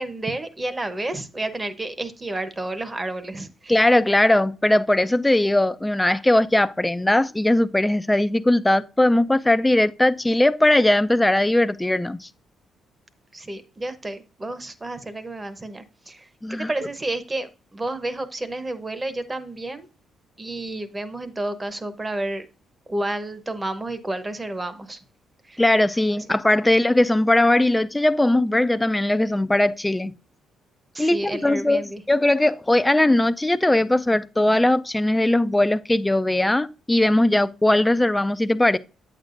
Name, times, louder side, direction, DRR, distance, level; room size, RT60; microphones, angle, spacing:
voice 1, 0.0-3.9 13.3-19.9 20.4-22.5 22.9-25.0 25.4-25.6 26.2-26.3 30.9-32.0, right 2 dB, 20° right, 1.0 m, -31 dB
voice 2, 3.7-12.3 16.4-16.7 25.6-30.1 31.0-31.8 32.1-38.8, left 1 dB, 10° left, 0.4 m, -19 dB
8.5 x 7.4 x 2.6 m
cardioid pair, 90°, 0 cm